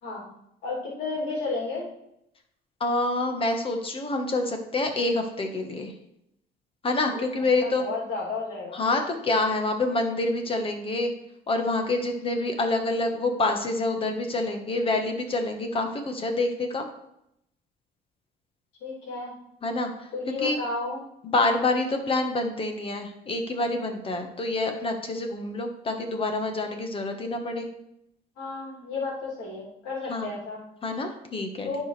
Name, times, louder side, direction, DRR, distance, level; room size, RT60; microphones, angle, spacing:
voice 1, 0.6-1.9 7.1-7.3 7.6-8.8 18.8-19.3 20.1-21.0 28.4-30.6 31.6-31.8, left 3 dB, 85° left, -3 dB, 3.0 m, -32 dB
voice 2, 2.8-5.9 6.8-7.8 8.7-11.1 11.5-16.9 19.6-20.1 20.4-20.6 21.2-27.7 30.1-30.3 30.8-31.7, left 2 dB, 30° left, 5 dB, 1.3 m, -27 dB
11.0 x 4.8 x 3.3 m, 0.79 s
cardioid pair, 110°, 17 cm